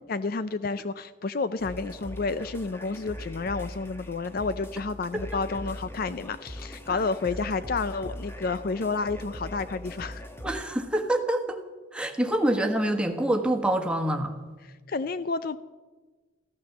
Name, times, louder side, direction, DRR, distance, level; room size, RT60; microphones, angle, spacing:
voice 1, 0.1-10.2 14.6-15.6, left 4 dB, 50° left, 14 dB, 0.5 m, -30 dB
sound 1, 1.6-10.6, equal, 10° left, 1.1 m, -41 dB
voice 2, 10.4-11.6 11.9-14.3, right 1 dB, 5° right, 4 dB, 1.3 m, -26 dB
15.0 x 13.5 x 7.1 m, 1.3 s
head